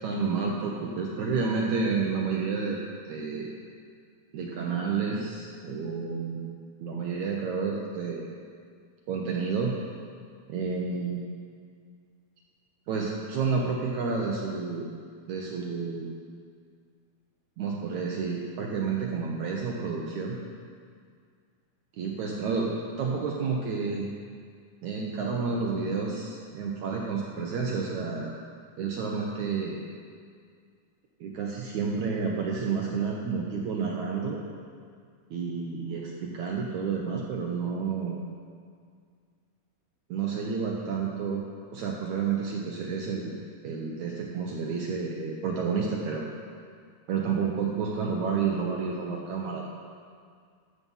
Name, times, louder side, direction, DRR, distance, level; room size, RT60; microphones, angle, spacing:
voice 1, 0.0-3.5 4.3-6.4 6.8-8.3 9.1-9.7 10.5-11.2 12.9-14.9 15.3-16.1 17.6-20.4 22.0-24.1 24.8-28.3 28.8-29.8 31.2-34.4 35.3-38.2 40.1-41.4 41.7-43.3 43.6-46.2 47.1-49.7, right 5 dB, 70° right, -1 dB, 1.8 m, -30 dB
13.0 x 7.7 x 5.5 m, 2.1 s
omnidirectional pair, 4.3 m